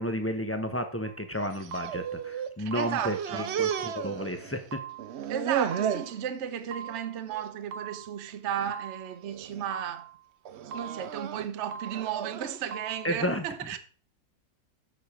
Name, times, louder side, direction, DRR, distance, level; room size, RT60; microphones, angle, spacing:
voice 1, 0.0-4.6 13.0-13.4, equal, 15° left, 0.6 m, -32 dB
sound 1, 1.0-1.3 1.7-2.3 2.7-3.3 3.7-4.3 4.7-5.3 5.7-6.3 6.7-7.3 7.7-8.3 8.7-9.3 9.7-10.3 10.7-11.3 11.7-12.3 12.7-13.1, right 7 dB, 90° right, 1.5 m, -42 dB
sound 2, 1.5-2.5 2.8-4.7 5.0-6.1 6.6-7.0 7.3-7.5 8.3-8.7 9.2-9.6 10.5-12.7, right 9 dB, 70° right, 0.6 m, -34 dB
voice 2, 2.6-3.6 5.3-10.1 10.7-13.8, right 9 dB, 50° right, 1.0 m, -34 dB
8.3 x 6.6 x 4.9 m
omnidirectional pair, 1.9 m